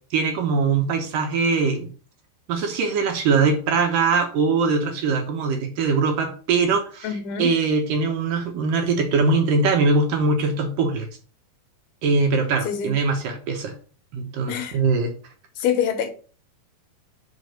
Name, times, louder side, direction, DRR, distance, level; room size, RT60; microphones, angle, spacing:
voice 1, 0.1-1.9 2.5-7.1 7.4-11.1 12.0-13.7 14.1-15.1, right 4 dB, 65° right, 2.6 m, -22 dB
voice 2, 7.0-7.5 12.6-13.0 14.5-14.8 15.6-16.1, left 8 dB, 75° left, 3.0 m, -25 dB
6.0 x 5.0 x 6.7 m
omnidirectional pair, 4.6 m